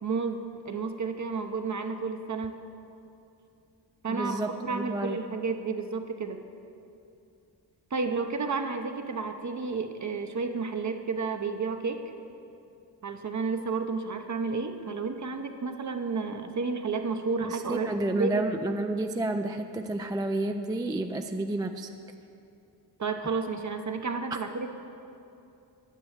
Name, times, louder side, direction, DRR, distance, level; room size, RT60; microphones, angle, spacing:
voice 1, 0.0-2.6 4.0-4.4 4.6-6.4 7.9-12.0 13.0-18.4 23.0-24.7, right 4 dB, 40° right, 6 dB, 0.7 m, -31 dB
voice 2, 4.1-5.2 17.4-21.9, right 2 dB, 10° right, 5 dB, 0.3 m, -30 dB
10.0 x 6.8 x 9.0 m, 2.7 s
wide cardioid pair, 125°, 43 cm